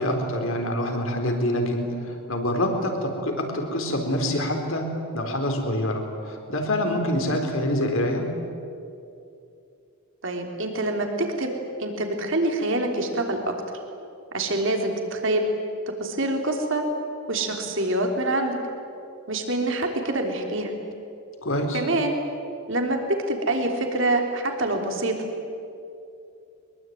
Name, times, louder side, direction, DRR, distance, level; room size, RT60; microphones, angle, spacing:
voice 1, 0.0-4.9 5.1-8.3 21.4-21.8, left 1 dB, 60° left, 4 dB, 4.0 m, -26 dB
voice 2, 10.2-11.5 11.8-13.5 14.3-15.4 16.0-16.8 17.3-18.6 19.3-20.7 21.7-22.2 22.7-25.1, right 2 dB, 55° right, 3 dB, 3.4 m, -25 dB
23.5 x 22.0 x 9.4 m, 2.6 s
head